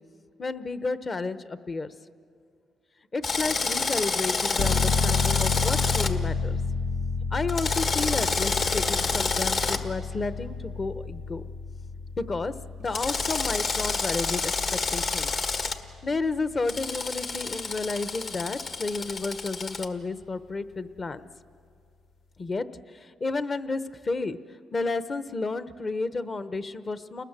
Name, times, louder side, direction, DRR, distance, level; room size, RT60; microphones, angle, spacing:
voice 1, 0.4-1.9 3.1-6.6 7.3-11.4 12.2-12.5 12.8-15.3 16.0-21.3 22.4-22.7 22.9-24.4 24.7-27.2, left 3 dB, 35° left, 12 dB, 1.0 m, -31 dB
Drill, 3.2-6.1 7.5-9.8 12.9-15.7 16.7-19.8, left 4 dB, 50° left, 1.6 m, -28 dB
sound 1, 4.6-17.1 17.4-17.5, left 5 dB, 75° left, 1.4 m, -31 dB
29.0 x 19.5 x 7.5 m, 2.4 s
cardioid pair, 90°, 0 cm